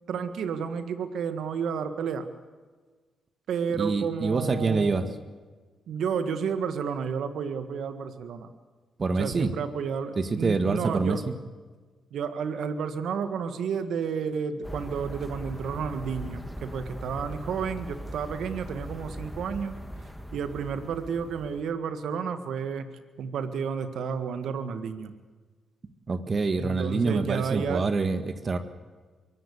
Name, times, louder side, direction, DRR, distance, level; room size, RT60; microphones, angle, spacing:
voice 1, 0.1-2.3 3.5-5.1 5.9-8.5 9.2-11.2 12.1-19.8 20.3-22.9 23.2-25.1 26.6-27.9, right 6 dB, 75° right, 10 dB, 1.7 m, -31 dB
voice 2, 3.8-5.1 9.0-9.5 10.2-11.3 26.1-28.6, right 4 dB, 45° right, 9 dB, 1.7 m, -26 dB
sound 1, 14.6-21.6, equal, ahead, 1.8 m, -40 dB
23.0 x 16.0 x 8.5 m, 1.4 s
supercardioid pair, 50°, 0 cm